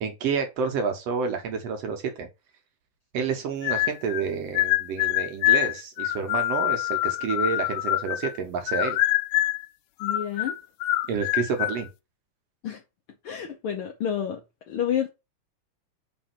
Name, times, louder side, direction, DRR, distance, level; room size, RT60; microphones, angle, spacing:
voice 1, 0.0-2.3 3.1-9.0 11.1-11.9, right 6 dB, 70° right, 1.9 m, -29 dB
sound 1, 3.6-4.3 4.6-8.4 8.7-9.7 10.0-11.8, left 16 dB, 90° left, 2.0 m, -25 dB
voice 2, 10.0-10.5 12.6-12.8 13.2-14.4 14.7-15.1, left 9 dB, 75° left, 1.2 m, -29 dB
5.1 x 3.5 x 5.6 m
omnidirectional pair, 3.3 m